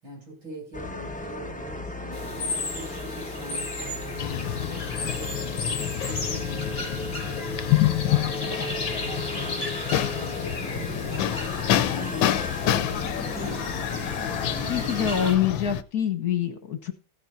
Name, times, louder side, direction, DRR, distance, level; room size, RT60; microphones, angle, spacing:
voice 1, 0.0-5.4 6.1-7.9 8.4-11.3 11.9-15.6, right 1 dB, 80° right, 8.2 m, -42 dB
sound 1, 0.7-15.3, left 1 dB, 5° left, 1.0 m, -36 dB
sound 2, 2.1-15.4, left 2 dB, 30° left, 2.8 m, -36 dB
sound 3, 4.2-15.8, left 13 dB, 75° left, 1.4 m, -28 dB
voice 2, 14.7-16.9, left 9 dB, 55° left, 1.7 m, -25 dB
16.0 x 9.1 x 2.6 m
omnidirectional pair, 2.1 m